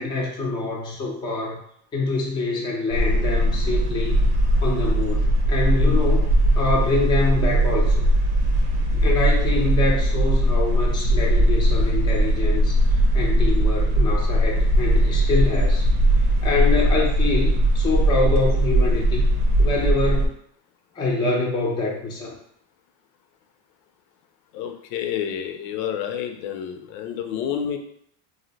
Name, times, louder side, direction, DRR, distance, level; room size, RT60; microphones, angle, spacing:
voice 1, 0.0-1.6 1.9-4.2 4.6-6.3 6.6-8.0 8.9-15.9 16.4-19.2 19.6-20.3 21.0-22.4, left 3 dB, 10° left, -3 dB, 0.4 m, -25 dB
sound 1, 2.9-20.3, right 1 dB, 80° right, 0.8 m, -19 dB
voice 2, 24.5-27.8, left 9 dB, 85° left, 6 dB, 0.6 m, -29 dB
2.6 x 2.0 x 3.9 m, 0.67 s
supercardioid pair, 135°, 50 cm